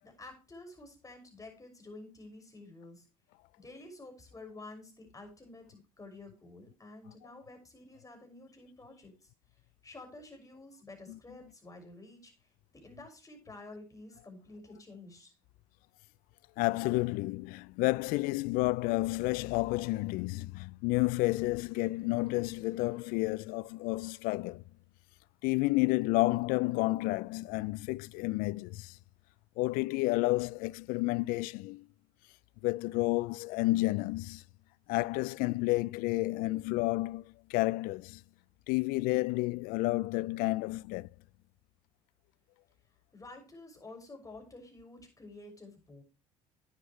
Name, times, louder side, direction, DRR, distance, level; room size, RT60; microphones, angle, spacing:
voice 1, 0.0-3.1 3.6-9.3 9.8-15.3 43.1-46.0, left 2 dB, 20° left, 6.1 m, -50 dB
voice 2, 16.6-24.6 25.4-29.0 29.6-31.8 32.6-34.4 34.9-37.2 37.5-38.2 38.7-41.1, left 21 dB, 75° left, 0.4 m, -30 dB
11.0 x 9.8 x 3.1 m
supercardioid pair, 70°, 15 cm